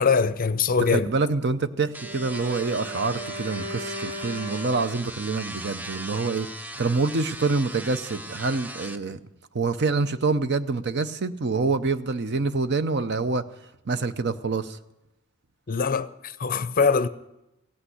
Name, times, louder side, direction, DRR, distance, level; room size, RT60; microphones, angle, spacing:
voice 1, 0.0-1.1 15.7-17.1, left 5 dB, 40° left, 0.5 m, -22 dB
voice 2, 0.9-6.5 6.8-9.2 9.5-13.4 13.9-14.8, right 3 dB, 50° right, 0.6 m, -26 dB
sound 1, 1.9-9.0, right 1 dB, 10° right, 0.5 m, -39 dB
Wind instrument woodwind instrument, 1.9-5.4, equal, 80° right, 3.6 m, -37 dB
17.0 x 8.7 x 8.0 m
head